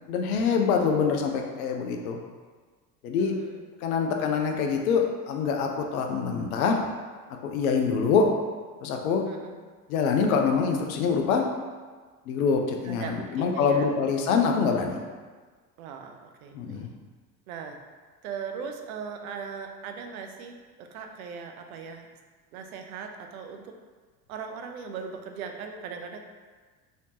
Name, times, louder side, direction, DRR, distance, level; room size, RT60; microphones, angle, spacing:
voice 1, 0.1-2.2 3.0-3.3 3.8-6.8 7.4-8.3 8.8-9.2 9.9-11.4 12.3-15.0 16.5-16.9, left 5 dB, 60° left, 3 dB, 0.6 m, -25 dB
voice 2, 3.2-3.6 9.3-9.6 12.8-13.9 15.8-17.0 17.5-17.8 18.2-22.1 22.5-23.7 24.3-26.2, right 6 dB, 60° right, 5 dB, 0.5 m, -39 dB
3.1 x 2.8 x 2.8 m, 1.4 s
figure-of-eight pair, 70°, 49 cm